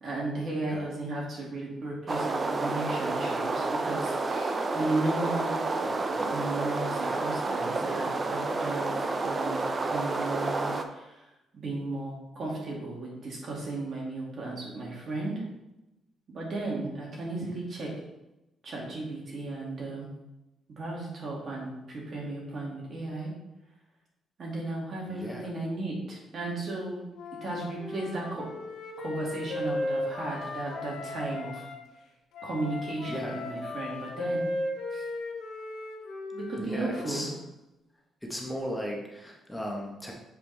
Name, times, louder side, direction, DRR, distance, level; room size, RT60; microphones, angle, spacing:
voice 1, 0.0-8.9 9.2-11.2 11.5-15.3 16.3-17.9 18.6-20.1 20.8-23.3 24.4-27.0 27.4-28.5 29.0-31.6 32.4-34.4 34.9-35.0 36.3-37.3, right 2 dB, 50° right, -3 dB, 2.5 m, -35 dB
sound 1, 2.1-10.8, right 3 dB, 35° right, 0.6 m, -30 dB
voice 2, 25.1-25.5 33.1-33.4 36.6-37.3 38.2-40.1, equal, 5° left, -1 dB, 1.3 m, -36 dB
Wind instrument woodwind instrument, 27.1-31.8 32.3-37.2, left 1 dB, 80° left, 1.3 m, -36 dB
7.1 x 4.9 x 3.5 m, 0.95 s
cardioid pair, 90°, 0 cm